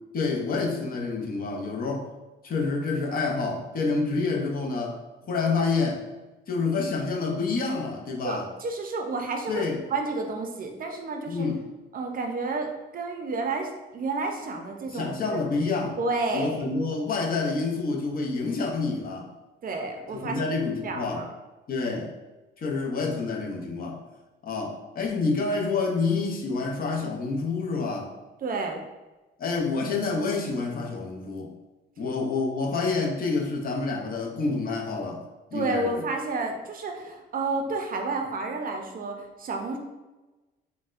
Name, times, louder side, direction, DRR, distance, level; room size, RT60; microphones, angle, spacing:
voice 1, 0.1-2.0 2.4-5.0 5.2-6.1 6.5-8.5 9.5-9.8 11.3-11.6 14.9-16.0 16.3-19.3 20.1-21.3 21.7-22.1 22.6-24.0 24.4-28.1 29.4-31.5 32.0-35.2 35.5-36.0, left 4 dB, 45° left, 1 dB, 0.6 m, -28 dB
voice 2, 8.2-11.5 11.9-15.1 16.0-16.6 19.6-20.6 20.8-21.3 28.4-28.8 35.5-39.8, right 3 dB, 45° right, 3 dB, 0.5 m, -30 dB
4.0 x 2.1 x 2.5 m, 1.1 s
cardioid pair, 90°, 20 cm